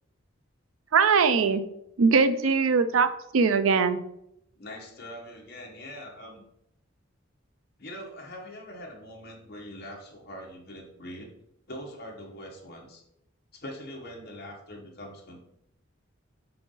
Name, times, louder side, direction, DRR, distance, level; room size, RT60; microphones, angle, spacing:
voice 1, 0.9-1.6 2.0-4.0, right 5 dB, 80° right, 11 dB, 0.5 m, -21 dB
voice 2, 4.6-6.4 7.8-11.3 11.7-13.0 13.5-15.4, equal, 50° left, -1 dB, 1.4 m, -42 dB
5.0 x 4.8 x 3.9 m, 0.78 s
head